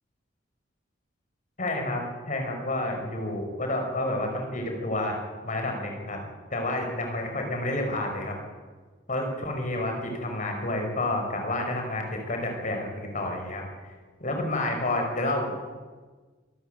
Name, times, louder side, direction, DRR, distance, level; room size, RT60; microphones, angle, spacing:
voice 1, 1.6-6.2 6.5-8.4 9.1-13.6 14.2-15.6, left 1 dB, 45° left, 3 dB, 5.5 m, -29 dB
25.5 x 14.0 x 9.2 m, 1.4 s
head